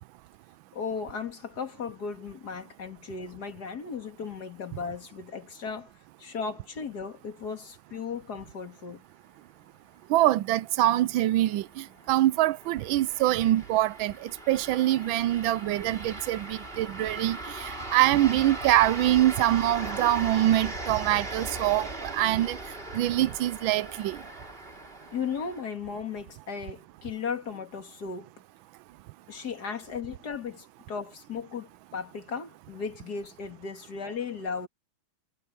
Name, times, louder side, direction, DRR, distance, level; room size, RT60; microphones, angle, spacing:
voice 1, 0.7-5.9 6.2-9.0 25.1-28.3 29.3-34.7, left 5 dB, 50° left, 2.5 m, -36 dB
voice 2, 10.1-22.6 22.9-24.2, right 14 dB, 75° right, 1.3 m, -24 dB
sound 1, 10.7-25.6, right 2 dB, 25° right, 3.3 m, -39 dB
omnidirectional pair, 2.3 m